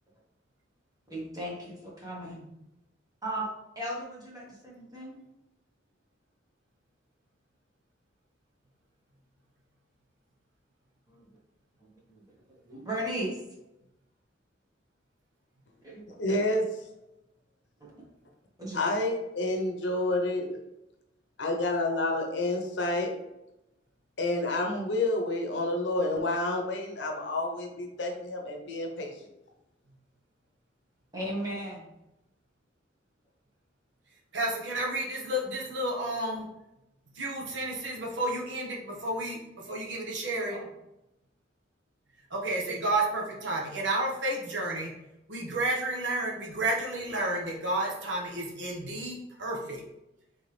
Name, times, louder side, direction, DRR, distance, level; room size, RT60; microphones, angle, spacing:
voice 1, 1.1-2.5 3.2-3.5 3.7-5.2 11.1-11.4 11.8-12.2 12.6-13.4 15.8-16.0 17.8-17.9 18.6-18.8 31.1-31.9 40.5-40.7, right 1 dB, 20° right, -5 dB, 1.5 m, -36 dB
voice 2, 16.1-16.7 18.7-20.6 21.4-23.1 24.2-29.1, left 2 dB, 70° left, 2 dB, 0.8 m, -29 dB
voice 3, 34.3-36.5 37.1-40.6 42.3-44.9 45.3-49.8, right 1 dB, 70° right, -1 dB, 1.2 m, -31 dB
4.0 x 3.7 x 3.3 m, 0.89 s
head